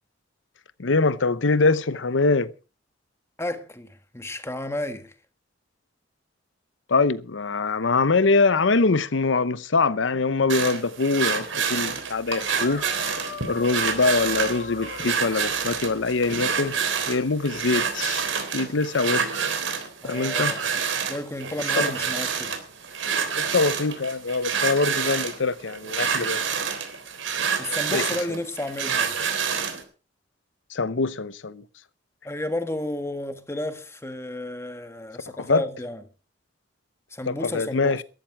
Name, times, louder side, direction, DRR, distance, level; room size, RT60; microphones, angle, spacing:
voice 1, 0.8-2.5 6.9-12.8 13.4-16.8 17.1-18.3 18.5-19.3 20.0-20.6 21.8-21.9 23.4-26.4 27.9-28.4 30.7-31.6 35.4-35.6 37.3-38.0, left 3 dB, 75° left, 0.8 m, -23 dB
voice 2, 3.4-5.1 20.0-20.6 21.1-22.6 27.6-29.2 32.2-36.0 37.1-38.0, left 1 dB, 15° left, 1.4 m, -32 dB
sound 1, 10.5-29.8, right 6 dB, 85° right, 3.5 m, -28 dB
sound 2, 12.6-15.1 16.3-16.9 17.5-17.7, left 3 dB, 55° left, 2.2 m, -37 dB
13.5 x 13.5 x 4.8 m
head